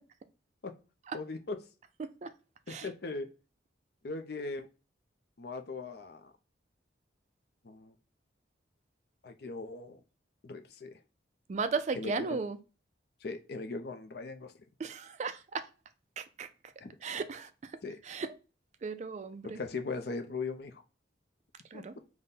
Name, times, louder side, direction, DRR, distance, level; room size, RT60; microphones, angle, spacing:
voice 1, 1.1-1.6 2.7-3.3 4.0-4.7 5.4-6.2 7.6-7.9 9.2-10.0 10.4-10.9 12.0-12.1 13.2-14.5 16.8-16.9 17.8-18.0 19.4-20.7 21.7-21.8, left 3 dB, 55° left, 6 dB, 0.5 m, -39 dB
voice 2, 2.0-2.3 2.7-2.9 11.5-12.6 14.8-15.7 16.2-16.5 17.0-17.8 18.0-18.3 18.8-19.6 21.7-21.9, right 4 dB, 40° right, 10 dB, 0.3 m, -36 dB
3.6 x 2.1 x 4.0 m, 0.33 s
head